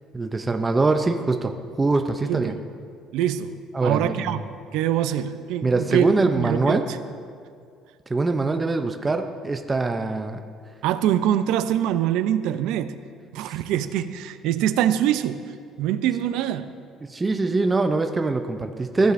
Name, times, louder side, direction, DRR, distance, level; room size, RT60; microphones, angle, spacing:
voice 1, 0.1-2.5 3.7-4.3 5.6-6.8 8.1-10.4 17.1-19.1, right 3 dB, 15° right, 6 dB, 0.4 m, -23 dB
voice 2, 2.3-2.6 3.1-7.0 10.8-13.0 13.3-15.4 15.8-16.7, right 11 dB, 80° right, 12 dB, 0.4 m, -24 dB
15.0 x 7.9 x 2.5 m, 2.2 s
cardioid pair, 125°, 0 cm